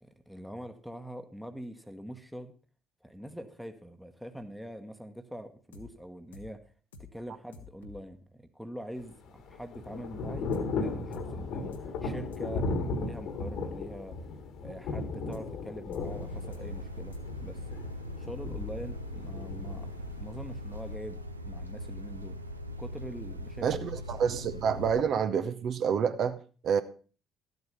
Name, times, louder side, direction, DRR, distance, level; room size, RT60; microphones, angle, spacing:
voice 1, 0.0-2.5 3.0-6.6 7.0-14.3 14.6-17.7 18.2-22.4 22.8-23.9, equal, ahead, 7 dB, 1.1 m, -44 dB
sound 1, 5.7-5.9 6.3-6.5 6.9-7.1 7.5-8.0 10.5-10.7 11.1-11.3 11.7-11.9 12.2-12.7 15.3-15.7 15.9-16.0 16.2-16.9 17.1-17.8, left 4 dB, 80° left, 1.0 m, -49 dB
Thunder / Rain, 9.0-20.9, left 3 dB, 55° left, 1.4 m, -36 dB
sound 2, 16.0-25.0, equal, 90° right, 0.6 m, -40 dB
voice 2, 23.6-26.4 26.6-26.8, right 7 dB, 50° right, 10 dB, 0.7 m, -28 dB
12.5 x 8.1 x 5.2 m, 0.37 s
figure-of-eight pair, 50°, 0 cm